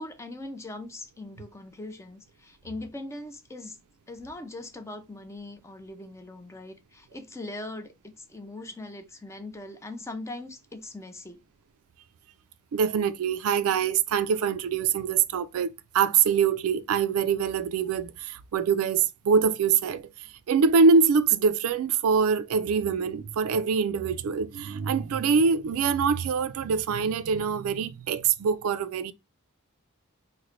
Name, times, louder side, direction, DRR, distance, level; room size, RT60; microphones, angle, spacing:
voice 1, 0.0-3.8 4.1-11.4, left 2 dB, 15° left, 0.4 m, -40 dB
voice 2, 12.7-29.1, right 5 dB, 70° right, 0.3 m, -24 dB
3.1 x 2.1 x 3.7 m
head